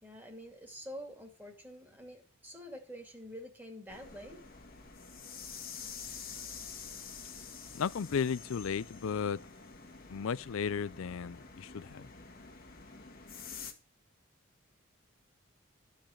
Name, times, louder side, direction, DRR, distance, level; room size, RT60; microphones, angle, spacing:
voice 1, 0.0-4.4, equal, 10° right, 2.4 m, -47 dB
sound 1, 3.9-13.7, left 6 dB, 45° left, 1.8 m, -48 dB
voice 2, 7.7-9.4 10.1-12.1, left 6 dB, 85° left, 0.4 m, -34 dB
13.0 x 5.0 x 7.2 m
head